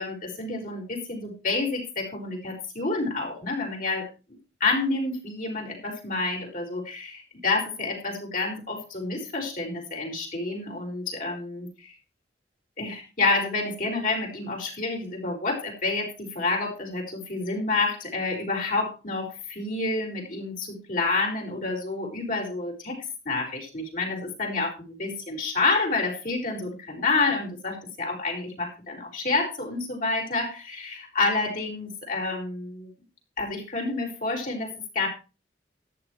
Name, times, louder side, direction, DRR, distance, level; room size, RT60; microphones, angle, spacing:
voice 1, 0.0-4.1 4.6-11.9 12.8-23.0 23.2-32.9 33.4-35.1, left 3 dB, 45° left, 0 dB, 4.9 m, -29 dB
14.0 x 11.5 x 3.2 m, 0.30 s
head